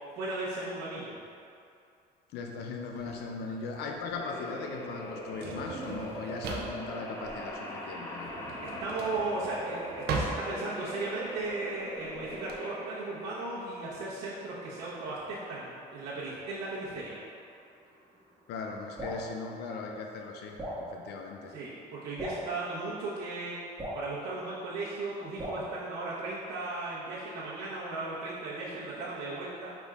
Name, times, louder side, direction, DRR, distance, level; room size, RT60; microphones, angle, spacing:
voice 1, 0.1-1.2 8.8-17.2 21.5-23.5 23.9-29.8, right 2 dB, 90° right, -11 dB, 1.0 m, -36 dB
voice 2, 2.3-8.3 18.5-21.5, left 4 dB, 80° left, 2 dB, 0.4 m, -39 dB
Drawer open or close, 3.0-12.6, right 3 dB, 70° right, 0.6 m, -39 dB
sound 1, 4.2-18.7, equal, 15° left, 0.7 m, -41 dB
Drip, 19.0-19.2 20.6-20.8 22.2-22.4 23.8-24.0 25.4-25.7, equal, 15° right, 1.3 m, -36 dB
5.6 x 3.6 x 2.4 m, 2.5 s
cardioid pair, 110°, 17 cm